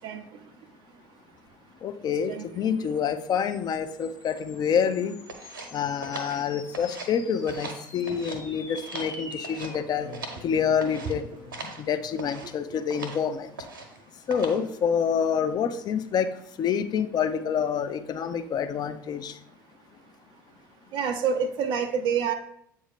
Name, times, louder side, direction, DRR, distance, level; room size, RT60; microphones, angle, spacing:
voice 1, 1.8-5.2 5.7-10.1 10.4-11.3 11.6-13.5 14.3-16.3 16.6-19.4, left 7 dB, 40° left, 9 dB, 0.6 m, -27 dB
sound 1, 2.5-13.2, left 4 dB, 75° left, 1.1 m, -46 dB
sound 2, 5.3-7.2 7.4-8.4 8.7-10.5 10.8-11.1 11.5-11.8 12.2-12.5 12.9-13.2 13.6-14.0 14.3-14.7, right 3 dB, 80° right, 1.0 m, -40 dB
voice 2, 20.9-22.3, right 6 dB, 50° right, 6 dB, 0.5 m, -27 dB
7.8 x 2.7 x 5.0 m, 0.72 s
figure-of-eight pair, 65°, 11 cm